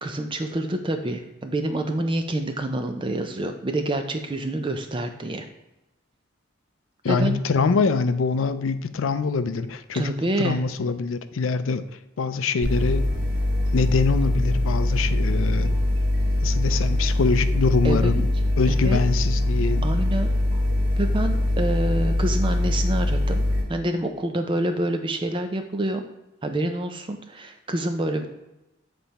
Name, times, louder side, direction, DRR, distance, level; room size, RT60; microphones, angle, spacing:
voice 1, 0.0-5.5 7.1-7.4 9.9-10.6 17.8-18.2 18.7-19.0 19.8-20.3 21.0-23.4 23.7-26.0 26.4-28.3, right 1 dB, 25° right, 6 dB, 0.4 m, -27 dB
voice 2, 7.0-10.1 10.4-11.8 12.2-13.1 13.7-15.8 16.4-18.3 18.6-19.8, left 4 dB, 80° left, 11 dB, 0.4 m, -24 dB
sound 1, 12.6-23.6, left 1 dB, 75° right, 1.9 m, -22 dB
7.6 x 3.3 x 4.1 m, 0.94 s
head